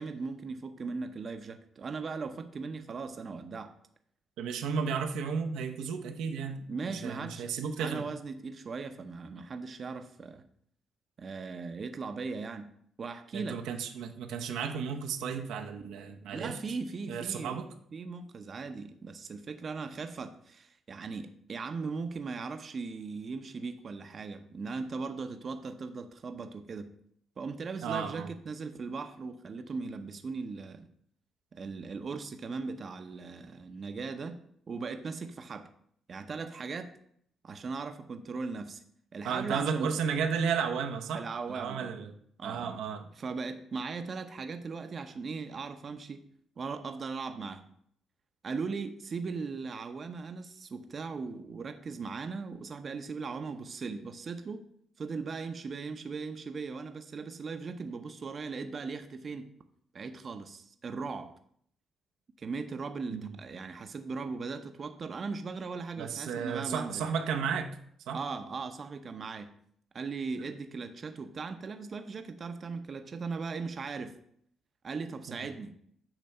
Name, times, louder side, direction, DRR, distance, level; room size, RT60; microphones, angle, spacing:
voice 1, 0.0-3.7 6.7-7.5 7.8-10.4 11.2-12.7 13.0-13.6 16.3-17.6 17.9-26.9 27.4-30.9 31.5-34.4 34.7-35.7 36.1-37.0 37.4-38.8 39.1-39.9 41.1-41.9 42.4-42.8 43.2-46.2 46.6-47.6 48.4-54.6 55.0-59.5 59.9-61.3 62.4-67.1 68.1-69.5 69.9-74.2 74.8-75.7, right 4 dB, 45° right, 8 dB, 0.7 m, -38 dB
voice 2, 4.4-8.1 13.3-16.6 17.1-17.7 27.8-28.3 39.2-41.2 41.5-42.1 42.4-43.1 63.1-63.4 66.0-67.7 68.1-68.2 75.3-75.4, right 6 dB, 85° right, 5 dB, 0.8 m, -33 dB
8.8 x 3.3 x 6.5 m, 0.66 s
cardioid pair, 90°, 0 cm